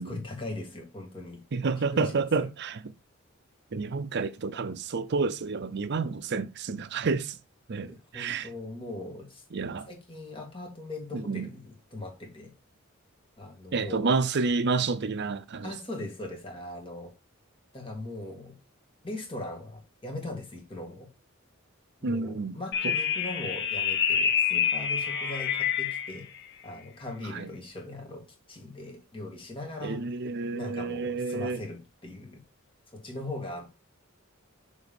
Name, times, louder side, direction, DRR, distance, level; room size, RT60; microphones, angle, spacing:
voice 1, 0.0-1.4 1.9-2.5 7.9-9.4 9.8-12.5 13.4-14.1 15.6-17.1 17.7-18.6 19.0-21.1 22.0-26.2 26.6-28.2 28.5-30.0 30.5-32.4 32.9-33.8, left 2 dB, 25° left, 2.1 m, -40 dB
voice 2, 1.5-2.8 3.7-7.4 7.7-8.5 9.5-9.9 11.1-11.5 13.7-15.7 22.0-22.6 22.8-22.9 27.3-27.5 29.8-31.6, right 4 dB, 55° right, 0.6 m, -29 dB
sound 1, 22.7-26.2, left 7 dB, 60° left, 0.9 m, -27 dB
6.4 x 3.6 x 5.2 m
head